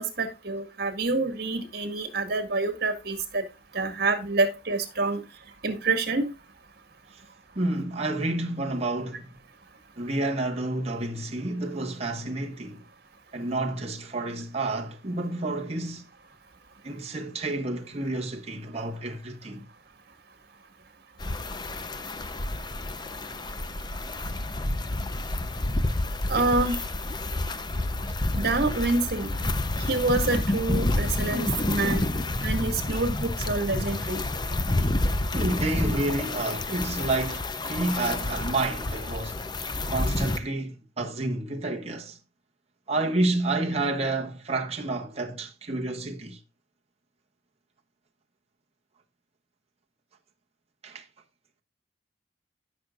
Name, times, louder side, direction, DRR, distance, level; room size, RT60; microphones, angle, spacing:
voice 1, 0.0-3.4 3.7-5.2 5.6-6.3 26.3-26.8 28.3-29.3 29.9-32.0 32.4-34.2, right 3 dB, 55° right, 2.1 m, -27 dB
voice 2, 7.5-9.3 10.0-12.8 13.3-16.1 16.8-19.6 35.3-39.5 39.9-42.2 42.9-46.4 50.8-51.0, right 2 dB, 35° right, 1.4 m, -30 dB
sound 1, 21.2-40.4, left 2 dB, 25° left, 0.7 m, -29 dB
16.5 x 6.4 x 2.5 m
head